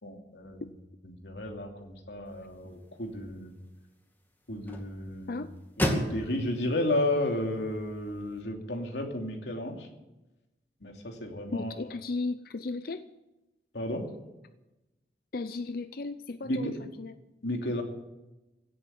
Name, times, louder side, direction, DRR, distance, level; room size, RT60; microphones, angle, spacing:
voice 1, 0.0-0.6 1.2-3.5 4.5-5.4 5.8-9.9 10.8-11.7 13.7-14.0 16.5-16.7 17.4-17.8, left 1 dB, 75° left, 2 dB, 2.8 m, -32 dB
sound 1, 2.2-8.4, equal, 10° left, 2.3 m, -37 dB
voice 2, 11.5-13.0 15.3-17.1, left 3 dB, 55° left, 11 dB, 0.6 m, -35 dB
16.5 x 8.4 x 9.5 m, 1.0 s
head